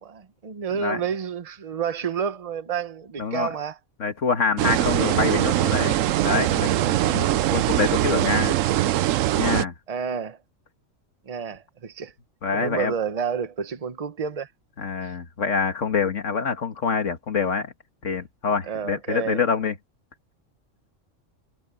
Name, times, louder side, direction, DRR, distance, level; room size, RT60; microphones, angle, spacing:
voice 1, 0.0-3.8 6.8-7.3 9.9-10.4 11.3-12.1 12.5-14.5 15.0-15.1 18.7-19.4, right 7 dB, 30° right, 0.9 m, -30 dB
voice 2, 3.2-3.5 4.0-7.3 7.5-8.6 9.4-9.7 12.4-12.9 14.8-17.7 18.0-19.8, left 5 dB, 75° left, 1.9 m, -26 dB
sound 1, 4.6-9.6, right 14 dB, 90° right, 1.0 m, -22 dB
omnidirectional pair, 1.3 m